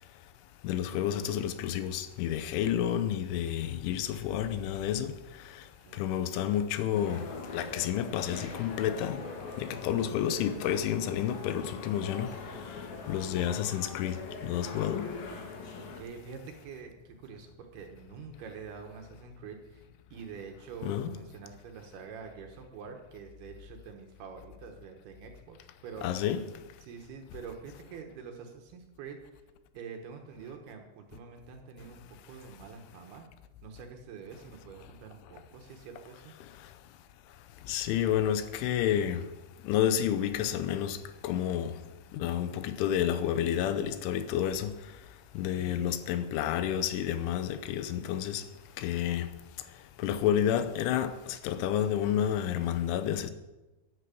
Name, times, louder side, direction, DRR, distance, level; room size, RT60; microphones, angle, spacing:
voice 1, 0.6-5.1 5.4-5.6 5.9-7.3 7.5-9.2 9.6-12.4 13.1-14.2 14.4-15.1 20.8-21.1 26.0-26.5 37.7-39.2 39.6-41.8 42.1-44.7 45.3-48.5 48.8-49.3 50.0-53.3, left 10 dB, 85° left, 3.3 m, -30 dB
voice 2, 5.8-6.2 9.6-10.0 15.7-19.9 20.1-26.2 26.8-29.4 29.7-33.3 33.6-36.3 45.5-45.9, right 6 dB, 65° right, 2.8 m, -46 dB
sound 1, 6.9-16.0, left 4 dB, 60° left, 3.1 m, -42 dB
10.5 x 10.0 x 8.4 m
omnidirectional pair, 5.5 m